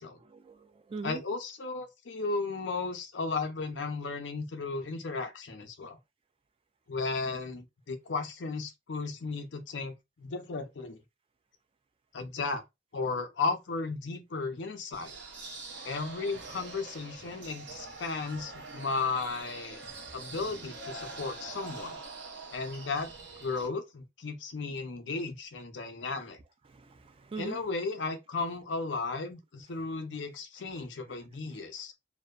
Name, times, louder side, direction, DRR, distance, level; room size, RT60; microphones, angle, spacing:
voice 1, 0.3-1.2 26.7-27.6, right 4 dB, 30° right, 0.3 m, -41 dB
voice 2, 1.0-6.0 6.9-11.0 12.1-12.6 12.9-15.1 15.8-19.8 20.1-22.0 22.5-23.1 23.4-26.4 27.4-31.9, left 4 dB, 85° left, 0.6 m, -35 dB
sound 1, 14.9-23.7, right 3 dB, 80° right, 0.8 m, -44 dB
2.6 x 2.1 x 2.3 m
head